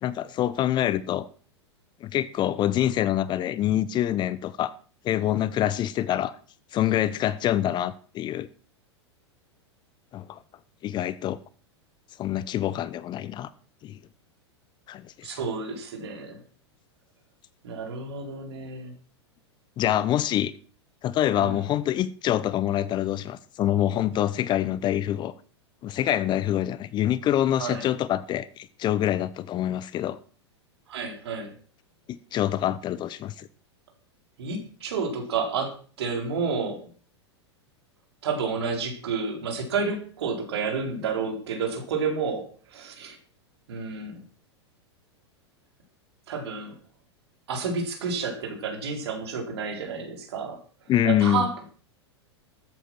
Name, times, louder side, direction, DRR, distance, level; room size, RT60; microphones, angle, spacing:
voice 1, 0.0-1.3 2.0-4.7 5.0-6.4 6.7-8.5 10.1-10.4 10.8-11.4 12.2-13.5 13.8-14.0 14.9-15.4 19.8-20.5 21.0-25.3 25.8-30.2 32.1-33.5 50.9-51.5, left 12 dB, 30° left, 0.8 m, -26 dB
voice 2, 15.2-16.4 17.6-18.9 21.4-21.6 27.6-27.9 30.9-31.5 34.4-36.9 38.2-43.2 43.7-44.2 46.3-46.7 47.5-50.6 51.0-51.6, right 5 dB, 65° right, 4.1 m, -30 dB
13.5 x 9.1 x 6.1 m
figure-of-eight pair, 95°, 15 cm